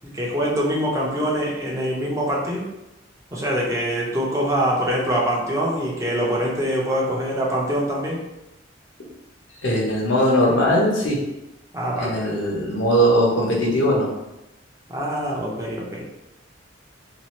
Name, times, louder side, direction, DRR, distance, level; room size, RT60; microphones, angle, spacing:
voice 1, 0.0-2.7 3.3-8.2 11.7-12.2 14.9-16.0, equal, 15° right, -4 dB, 0.7 m, -24 dB
voice 2, 9.6-11.2 12.0-14.1, equal, 70° left, -3 dB, 0.9 m, -20 dB
2.7 x 2.4 x 3.0 m, 0.92 s
head